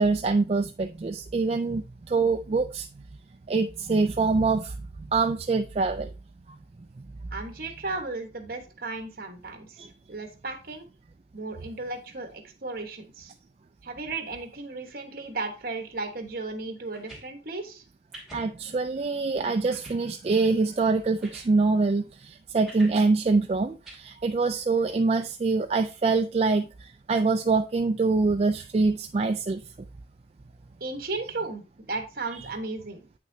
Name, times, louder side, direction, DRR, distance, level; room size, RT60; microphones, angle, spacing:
voice 1, 0.0-2.9 3.5-6.1 9.8-9.9 18.3-29.6, right 3 dB, 35° right, 0.3 m, -25 dB
voice 2, 7.3-10.8 11.3-13.3 13.8-17.8 30.8-33.0, right 3 dB, 55° right, 1.3 m, -35 dB
sound 1, 16.9-17.3 18.1-18.5 19.0-19.1 19.7-20.0 20.9-21.0 21.2-21.5 22.7-23.0 23.8-24.0, right 1 dB, ahead, 2.6 m, -45 dB
8.6 x 5.9 x 2.7 m
head